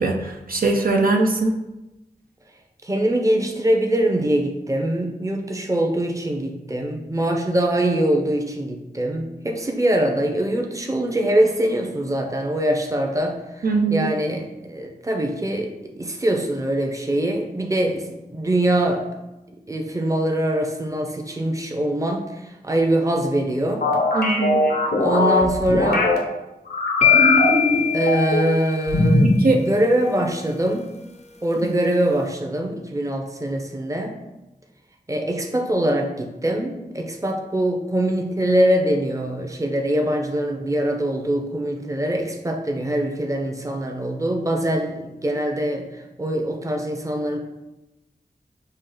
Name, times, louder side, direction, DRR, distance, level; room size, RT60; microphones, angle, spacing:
voice 1, 0.0-1.5 13.6-14.1 24.1-24.6 29.4-29.6, right 3 dB, 65° right, 2 dB, 0.5 m, -20 dB
voice 2, 2.8-15.7 16.0-19.0 19.7-23.8 25.0-26.1 27.9-30.9 31.4-34.1 35.1-45.8 46.2-47.4, right 1 dB, 20° right, 2 dB, 0.6 m, -23 dB
sound 1, 23.8-26.2 26.7-28.5 28.9-29.4, left 2 dB, 90° left, 0.8 m, -20 dB
sound 2, 27.0-29.1, left 9 dB, 45° left, 0.5 m, -21 dB
5.3 x 2.5 x 3.8 m, 0.99 s
wide cardioid pair, 50°, 16 cm